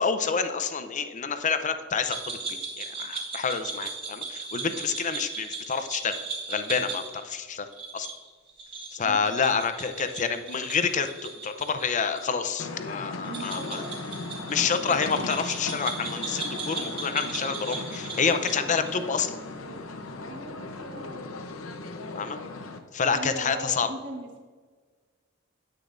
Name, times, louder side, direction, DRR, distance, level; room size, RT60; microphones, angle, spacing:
voice 1, 0.0-6.2 6.5-7.7 7.9-8.1 8.9-13.8 14.5-19.4 22.2-22.4 22.9-23.9, left 5 dB, 35° left, 9 dB, 0.6 m, -28 dB
sound 1, 2.1-12.2 12.5-12.6 13.2-19.0, right 4 dB, 25° right, 2.4 m, -37 dB
sound 2, 12.6-22.8, left 3 dB, 90° left, 0.7 m, -37 dB
voice 2, 13.2-14.0 20.3-21.5 23.1-24.4, right 1 dB, 60° right, 0 dB, 1.5 m, -40 dB
10.0 x 8.4 x 2.6 m, 1.5 s
head